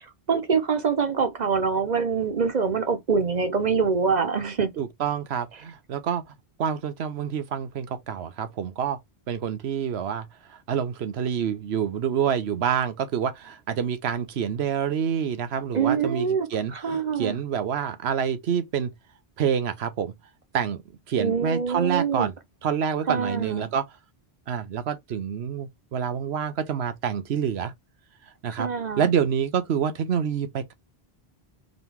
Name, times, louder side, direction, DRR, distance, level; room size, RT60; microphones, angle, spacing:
voice 1, 0.3-4.7 15.7-17.4 21.2-22.3 23.1-23.7 28.6-29.1, right 5 dB, 45° right, 1.0 m, -25 dB
voice 2, 4.8-6.2 6.6-9.0 9.3-10.3 10.7-18.9 19.4-20.1 20.5-20.8 21.1-22.3 22.6-23.8 24.5-27.7 28.4-28.7 29.0-30.7, right 8 dB, 90° right, 1.0 m, -27 dB
3.8 x 2.9 x 3.5 m
omnidirectional pair, 1.0 m